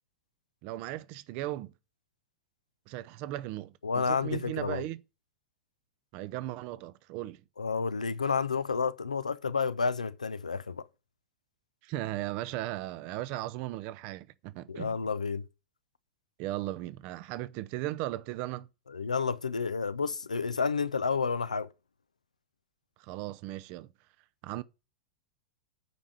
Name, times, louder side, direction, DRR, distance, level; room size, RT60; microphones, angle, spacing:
voice 1, 0.6-1.7 2.9-5.0 6.1-7.4 11.8-15.0 16.4-18.7 23.0-23.9 24.4-24.6, right 16 dB, 40° right, 0.7 m, -37 dB
voice 2, 3.8-4.8 7.6-10.8 14.7-15.4 18.9-21.7, left 5 dB, 75° left, 0.6 m, -30 dB
9.3 x 4.8 x 7.3 m
figure-of-eight pair, 90°, 4 cm